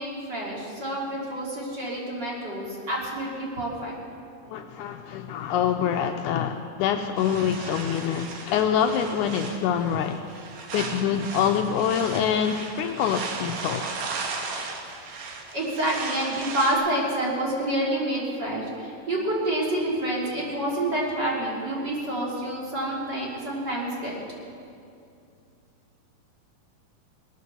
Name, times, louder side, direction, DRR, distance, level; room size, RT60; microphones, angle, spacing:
voice 1, 0.0-3.9 15.1-24.1, right 1 dB, 35° right, -5 dB, 3.0 m, -28 dB
voice 2, 4.5-10.2 10.7-13.9, left 8 dB, 80° left, 5 dB, 1.9 m, -25 dB
sound 1, 7.2-16.7, right 4 dB, 75° right, 2.9 m, -36 dB
20.0 x 9.4 x 6.8 m, 2.5 s
omnidirectional pair, 3.8 m